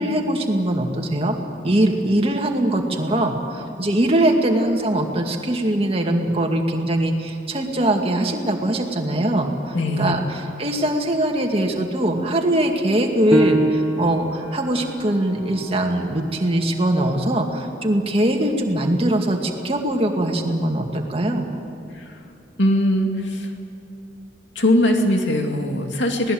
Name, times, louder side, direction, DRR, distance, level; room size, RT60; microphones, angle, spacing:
voice 1, 0.0-1.4 1.6-21.5, right 1 dB, 30° right, 2 dB, 2.2 m, -21 dB
voice 2, 9.7-10.2 21.9-22.0 22.6-23.5 24.6-26.3, left 1 dB, 75° left, 3 dB, 2.5 m, -20 dB
Piano, 13.3-18.5 19.0-19.1 19.7-20.2, right 1 dB, 15° right, 1.7 m, -27 dB
26.5 x 18.5 x 7.9 m, 2.5 s
head